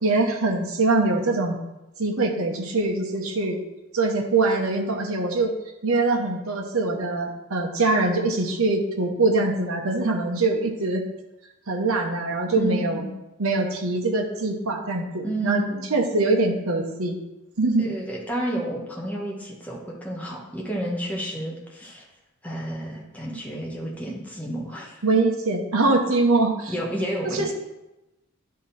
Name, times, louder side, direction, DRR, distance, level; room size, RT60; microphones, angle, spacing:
voice 1, 0.0-1.6 2.0-3.6 3.9-5.5 5.8-11.0 11.7-13.0 13.4-15.6 15.9-17.2 17.6-17.8 25.0-26.7 27.3-27.5, right 3 dB, 75° right, 1 dB, 1.0 m, -23 dB
voice 2, 12.6-13.1 15.2-16.0 17.8-22.0 22.4-25.0 26.7-27.5, right 1 dB, 5° left, -3 dB, 1.4 m, -31 dB
11.0 x 3.8 x 4.2 m, 0.97 s
head